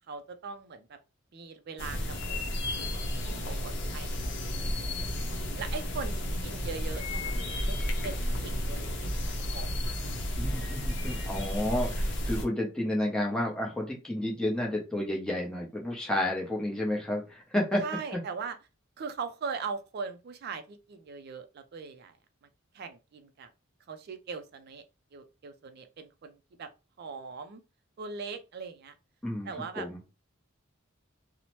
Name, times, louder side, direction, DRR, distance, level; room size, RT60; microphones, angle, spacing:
voice 1, 0.1-1.0 1.3-5.1 5.6-10.0 17.8-18.6 19.0-22.1 22.7-23.5 23.9-24.8 25.1-26.7 27.0-27.6 28.0-28.9 29.4-30.1, right 5 dB, 50° right, 0.4 m, -41 dB
sound 1, 1.8-12.4, left 1 dB, 60° left, 0.6 m, -32 dB
voice 2, 10.4-17.8 18.1-18.2 29.2-30.0, left 1 dB, 5° left, 0.7 m, -31 dB
2.8 x 2.0 x 3.0 m
head